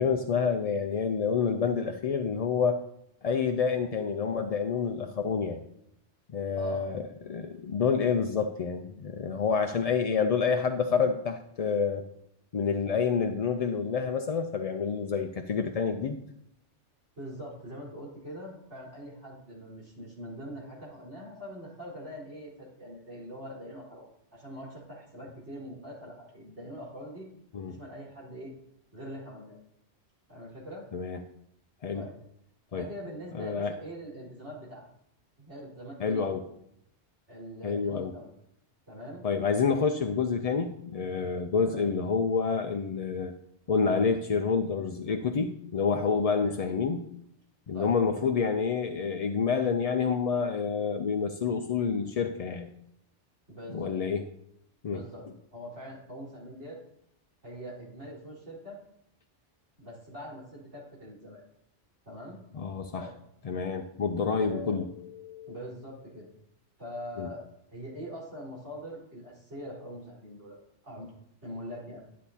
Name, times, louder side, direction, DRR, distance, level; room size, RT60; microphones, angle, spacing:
voice 1, 0.0-2.8 3.2-5.6 6.3-12.0 12.5-16.2 27.5-27.8 30.9-31.2 31.8-32.0 32.7-32.9 33.3-33.8 36.0-36.4 37.6-38.1 39.2-43.3 43.7-47.1 47.7-52.7 53.7-54.2 54.8-55.0 62.5-63.1 63.4-65.6 67.2-67.3, left 5 dB, 50° left, 5 dB, 0.4 m, -28 dB
voice 2, 6.6-6.9 12.8-13.0 17.2-27.3 27.7-28.5 28.9-29.6 30.3-30.8 31.9-32.1 32.7-34.8 35.4-36.3 37.3-38.3 38.9-39.2 41.6-41.9 46.3-46.6 47.7-47.9 53.5-54.0 54.9-55.3 55.5-56.8 57.4-58.8 59.8-61.4 62.1-62.4 62.9-63.1 64.4-64.8 65.5-66.3 66.8-67.4 67.7-70.6 70.8-71.1 71.4-72.0, equal, 80° right, -6 dB, 4.5 m, -43 dB
12.0 x 8.4 x 2.8 m, 0.75 s
omnidirectional pair, 1.2 m